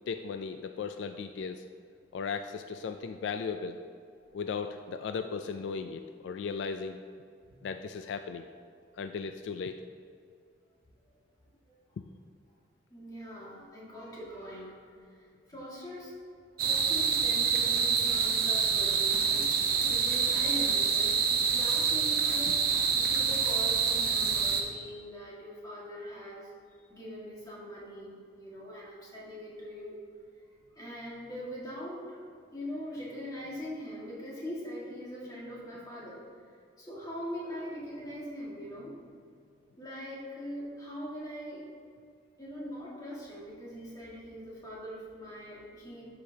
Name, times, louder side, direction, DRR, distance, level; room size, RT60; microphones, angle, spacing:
voice 1, 0.1-1.6 2.1-3.8 4.3-7.0 7.6-8.5 9.0-9.7 22.5-22.6, left 5 dB, 70° left, 8 dB, 0.3 m, -36 dB
voice 2, 12.9-14.7 15.2-22.6 22.9-26.5 26.9-30.0 30.7-32.2 32.5-36.2 36.8-39.3 39.8-41.7 42.4-46.0, equal, 20° left, -6 dB, 1.8 m, -42 dB
sound 1, 16.6-24.6, right 6 dB, 50° right, 0.7 m, -27 dB
12.0 x 5.1 x 2.8 m, 2.4 s
head